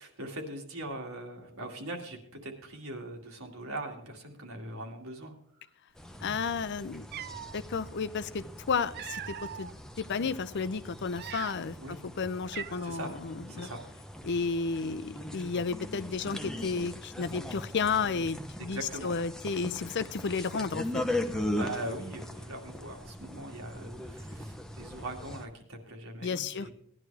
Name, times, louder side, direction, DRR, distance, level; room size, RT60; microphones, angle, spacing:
voice 1, 0.0-5.3 11.8-12.0 12.8-13.2 13.5-13.8 18.7-19.1 21.6-26.7, right 1 dB, 70° right, 2 dB, 2.2 m, -41 dB
sound 1, 5.9-25.5, left 1 dB, 5° left, 0.7 m, -40 dB
voice 2, 6.2-7.1 7.5-9.7 10.0-13.7 14.2-21.0 26.2-26.7, left 5 dB, 55° left, 13 dB, 0.5 m, -32 dB
Cat, 6.6-6.7 7.0-7.6 8.5-9.7 10.3-10.5 11.0-11.8 12.1-12.2 12.5-13.1, right 10 dB, 45° right, 0.4 m, -41 dB
17.5 x 11.0 x 3.4 m, 0.67 s
head